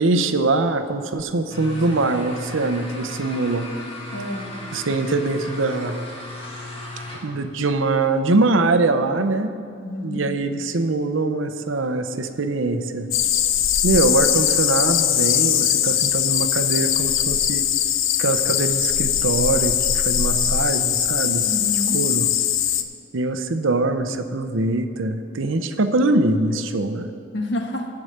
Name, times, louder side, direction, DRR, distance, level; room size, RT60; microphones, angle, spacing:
voice 1, 0.0-3.7 4.7-6.0 7.2-9.5 10.0-13.1 13.8-17.6 18.2-21.5 21.9-22.3 23.1-27.1, right 2 dB, 80° right, 8 dB, 0.7 m, -22 dB
sound 1, 1.5-7.4, left 2 dB, 25° left, 1.5 m, -35 dB
voice 2, 4.1-4.5 9.8-10.2 21.4-22.0 27.3-27.9, left 1 dB, 60° left, 3 dB, 1.2 m, -28 dB
sound 2, 13.1-22.8, left 10 dB, 80° left, 0.6 m, -21 dB
14.0 x 4.8 x 7.9 m, 2.4 s
head